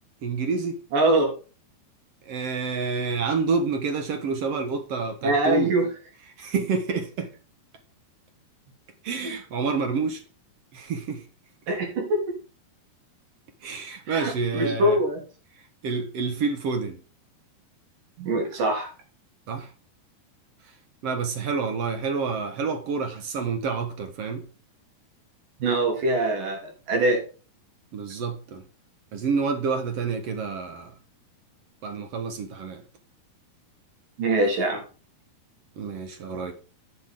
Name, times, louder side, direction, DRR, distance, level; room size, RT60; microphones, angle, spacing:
voice 1, 0.2-0.8 2.2-5.7 6.4-7.3 9.0-10.2 10.7-11.2 13.6-15.0 15.8-17.0 19.5-19.7 21.0-24.4 27.9-28.6 29.1-30.9 31.8-32.8 35.8-36.5, right 5 dB, 70° right, 1.4 m, -28 dB
voice 2, 0.9-1.3 5.2-5.9 11.7-12.2 14.1-15.2 18.2-18.9 25.6-27.2 34.2-34.8, right 2 dB, 55° right, 4.6 m, -23 dB
11.0 x 9.4 x 3.7 m
omnidirectional pair, 4.8 m